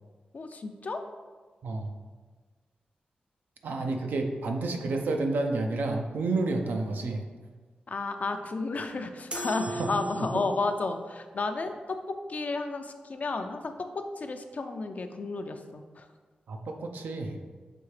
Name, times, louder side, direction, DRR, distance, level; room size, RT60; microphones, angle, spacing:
voice 1, 0.3-1.0 7.9-16.1, left 3 dB, 55° left, 7 dB, 0.4 m, -32 dB
voice 2, 1.6-1.9 3.6-7.2 9.8-9.9 10.2-10.3 16.5-17.4, right 3 dB, 85° right, 3 dB, 0.5 m, -30 dB
sound 1, 9.3-10.8, right 1 dB, 35° right, 0.6 m, -37 dB
6.0 x 2.8 x 3.2 m, 1.4 s
cardioid pair, 55°, 3 cm